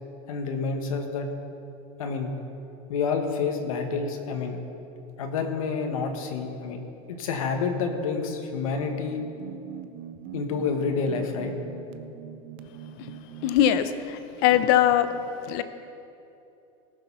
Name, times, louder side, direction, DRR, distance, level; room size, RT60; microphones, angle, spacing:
voice 1, 0.3-1.3 2.0-2.3 2.9-4.6 5.2-6.8 7.1-9.2 10.3-11.5, left 5 dB, 90° left, 4 dB, 1.5 m, -28 dB
sound 1, 8.5-13.7, right 11 dB, 30° right, 0.5 m, -42 dB
voice 2, 13.4-15.1 15.4-15.6, left 11 dB, 40° left, 11 dB, 0.6 m, -22 dB
18.5 x 6.7 x 5.6 m, 2.8 s
supercardioid pair, 175°, 17 cm